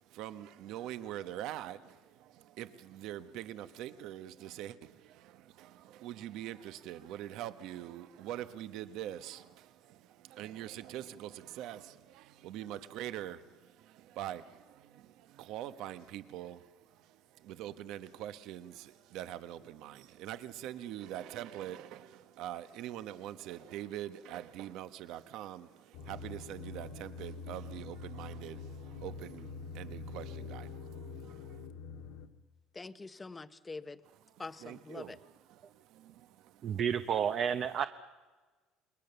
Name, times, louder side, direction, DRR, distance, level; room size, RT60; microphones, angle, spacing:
voice 1, 0.0-31.7 34.3-36.8, right 12 dB, 60° right, 1.0 m, -44 dB
sound 1, 25.9-32.3, left 4 dB, 80° left, 1.7 m, -45 dB
voice 2, 32.7-34.0 34.4-35.2, left 3 dB, 15° left, 0.8 m, -45 dB
voice 3, 36.6-37.9, right 8 dB, 40° right, 0.8 m, -30 dB
28.5 x 22.0 x 6.9 m
cardioid pair, 160°, 0 cm